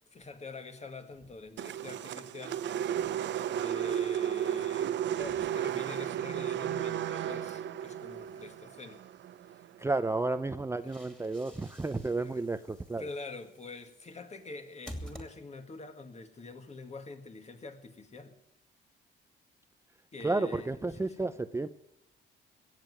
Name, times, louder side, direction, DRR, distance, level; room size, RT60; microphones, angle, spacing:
voice 1, 0.1-2.6 3.6-9.0 10.8-10.9 11.4-11.6 12.2-12.4 13.0-18.4 20.1-21.3, left 3 dB, 35° left, 2.0 m, -45 dB
sound 1, 1.6-9.8, right 10 dB, 65° right, 0.7 m, -34 dB
sound 2, 7.4-8.5 10.5-15.9, equal, 5° left, 2.7 m, -51 dB
voice 2, 9.8-13.0 20.2-21.7, right 3 dB, 15° right, 0.6 m, -32 dB
16.5 x 7.6 x 9.7 m
cardioid pair, 90°, 20 cm